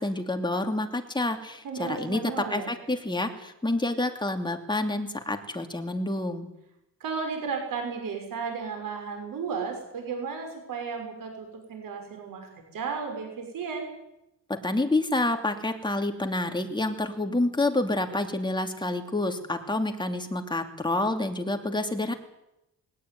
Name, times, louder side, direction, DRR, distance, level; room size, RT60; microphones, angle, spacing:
voice 1, 0.0-6.5 14.6-22.1, left 2 dB, 15° left, 4 dB, 2.8 m, -28 dB
voice 2, 1.6-2.7 7.0-13.9, right 5 dB, 85° right, 4 dB, 6.1 m, -34 dB
20.5 x 18.5 x 9.6 m, 0.87 s
cardioid pair, 120°, 33 cm